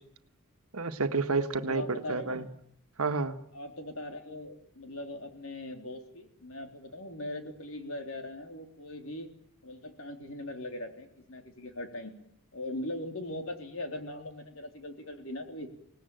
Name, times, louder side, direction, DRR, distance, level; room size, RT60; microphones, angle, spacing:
voice 1, 0.7-2.5 3.0-3.4, right 3 dB, 70° right, 9 dB, 1.6 m, -30 dB
voice 2, 1.6-2.5 3.5-9.3 9.6-12.1 12.5-15.7, left 1 dB, 65° left, 6 dB, 3.7 m, -40 dB
24.0 x 19.5 x 9.1 m, 0.69 s
head